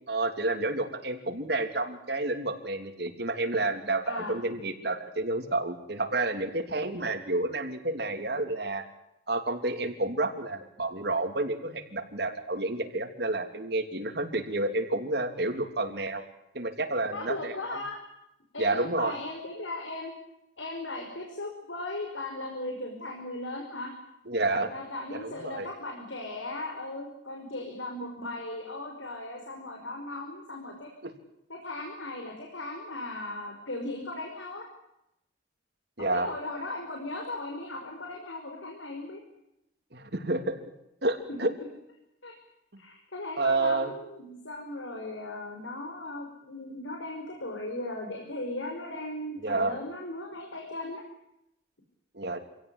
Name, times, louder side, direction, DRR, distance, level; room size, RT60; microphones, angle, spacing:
voice 1, 0.1-8.8 9.3-16.2 16.5-17.8 18.6-19.2 24.3-24.7 25.1-25.7 31.0-31.1 36.0-36.3 39.9-40.6 41.0-41.5 43.4-43.9 49.4-49.8 52.1-52.4, right 2 dB, 55° right, 6 dB, 3.1 m, -30 dB
voice 2, 4.1-4.4 17.1-18.0 18.5-20.1 20.6-23.9 24.7-30.9 31.5-34.7 36.0-39.2 41.3-41.4 42.2-42.4 42.8-51.0, left 2 dB, 85° left, 2 dB, 5.4 m, -37 dB
27.0 x 17.5 x 9.9 m, 0.84 s
head